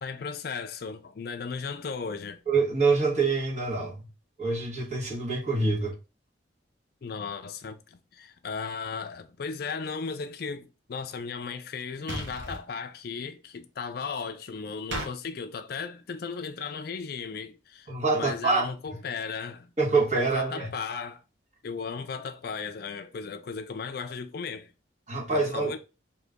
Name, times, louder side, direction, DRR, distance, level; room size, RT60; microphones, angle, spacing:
voice 1, 0.0-2.4 7.0-19.7 20.3-21.2 21.6-24.7 25.3-25.8, left 5 dB, 55° left, 0.4 m, -36 dB
voice 2, 2.5-4.1 4.4-6.0 17.9-18.7 19.8-20.7 25.1-25.7, right 3 dB, 40° right, 1.4 m, -26 dB
sound 1, 12.1-12.6 14.9-15.1, right 1 dB, 80° right, 1.1 m, -34 dB
3.8 x 2.9 x 3.5 m
head